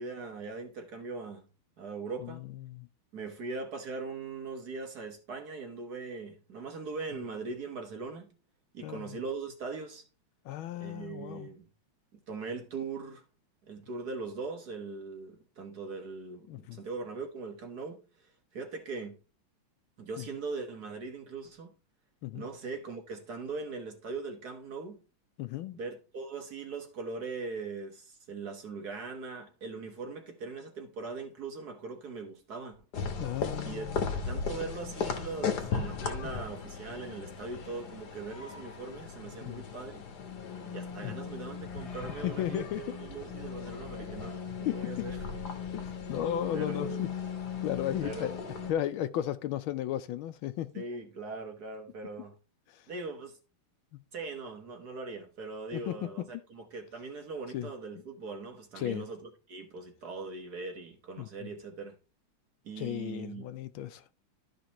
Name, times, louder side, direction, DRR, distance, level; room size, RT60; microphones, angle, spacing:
voice 1, 0.0-1.4 1.8-2.4 3.1-8.3 8.7-10.0 10.7-11.6 12.3-13.2 13.6-19.2 20.0-21.7 22.3-25.0 25.7-32.7 33.6-33.9 34.1-40.0 40.7-45.2 46.5-47.1 48.0-48.3 50.7-52.4 52.9-53.4 54.1-62.0 62.6-63.5, right 4 dB, 50° right, 1.6 m, -40 dB
voice 2, 2.2-2.9 8.8-9.0 10.4-11.5 16.5-16.8 20.2-20.3 22.2-22.4 25.4-25.8 33.2-34.0 39.4-39.6 41.0-41.2 42.2-42.8 44.6-45.1 45.7-47.1 47.6-48.4 48.7-50.8 52.7-52.8 55.7-56.0 57.5-57.7 58.8-59.1 61.2-61.5 62.8-64.0, left 12 dB, 75° left, 1.4 m, -35 dB
sound 1, 32.9-48.7, left 6 dB, 55° left, 1.6 m, -37 dB
12.5 x 5.3 x 2.9 m
omnidirectional pair, 2.4 m